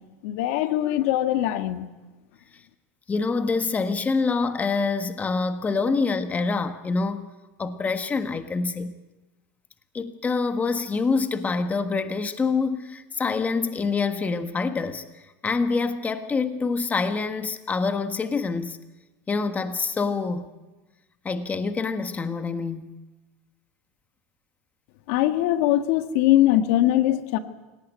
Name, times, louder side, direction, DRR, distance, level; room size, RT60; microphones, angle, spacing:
voice 1, 0.2-1.9 25.1-27.4, left 14 dB, 65° left, 8 dB, 1.6 m, -21 dB
voice 2, 3.1-7.3 7.6-9.0 9.9-15.0 15.4-18.8 19.3-20.5 21.2-22.9, left 4 dB, 20° left, 9 dB, 1.5 m, -26 dB
25.5 x 18.0 x 9.4 m, 1.2 s
supercardioid pair, 115°, 8 cm